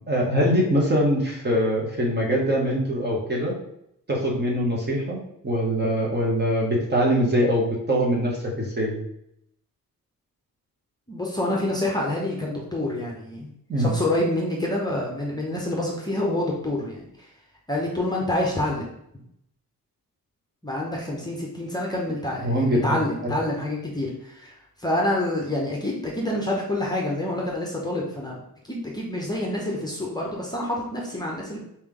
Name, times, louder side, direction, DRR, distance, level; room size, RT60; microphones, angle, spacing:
voice 1, 0.1-3.5 4.1-9.0 13.7-13.9 22.4-23.0 23.2-23.4, equal, 30° right, -2 dB, 1.1 m, -23 dB
voice 2, 11.1-13.5 13.8-17.3 17.7-18.8 20.6-28.4 28.7-31.6, left 1 dB, 10° left, -2 dB, 0.8 m, -27 dB
4.3 x 3.3 x 3.8 m, 0.76 s
wide cardioid pair, 135°, 34 cm